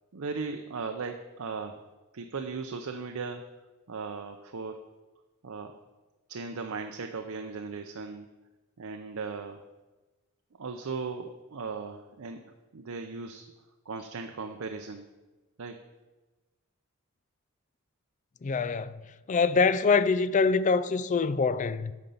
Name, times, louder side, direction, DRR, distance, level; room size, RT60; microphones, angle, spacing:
voice 1, 0.1-1.9 2.1-3.4 3.9-4.9 5.4-5.8 6.3-8.3 8.8-9.6 10.6-12.4 12.7-13.5 13.9-15.1 15.6-15.8, right 4 dB, 80° right, 0.6 m, -37 dB
voice 2, 18.4-19.0 19.3-21.9, left 4 dB, 35° left, 0.4 m, -24 dB
9.6 x 5.2 x 6.9 m
head